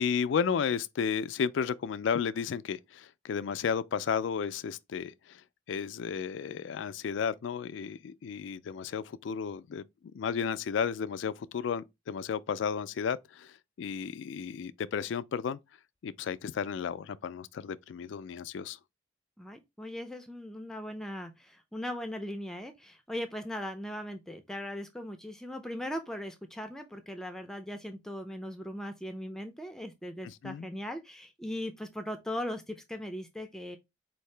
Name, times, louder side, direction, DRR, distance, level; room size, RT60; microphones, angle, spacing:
voice 1, 0.0-5.4 5.7-9.8 10.1-15.6 16.0-18.8 30.2-30.7, left 6 dB, 70° left, 0.3 m, -33 dB
voice 2, 19.4-33.8, left 1 dB, 5° left, 0.4 m, -39 dB
4.5 x 2.7 x 3.2 m
head